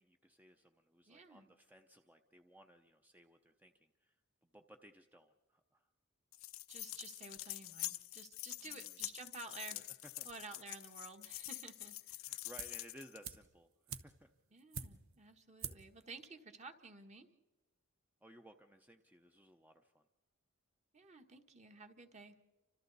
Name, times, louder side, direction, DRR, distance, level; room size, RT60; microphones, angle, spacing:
voice 1, 0.0-4.1 4.4-5.9 8.6-9.0 9.7-9.9 10.2-10.3 12.2-14.3 18.2-20.1, right 1 dB, 10° right, 5 dB, 0.6 m, -60 dB
voice 2, 1.1-1.5 6.7-9.8 10.2-12.0 14.5-17.3 20.9-22.3, right 3 dB, 35° right, 6 dB, 1.4 m, -53 dB
sound 1, 6.3-13.3, left 17 dB, 70° left, 0.6 m, -46 dB
sound 2, 12.6-12.9 13.2-15.2 15.6-16.0 16.2-16.3, right 7 dB, 75° right, 1.0 m, -47 dB
30.0 x 26.0 x 4.1 m, 1.1 s
head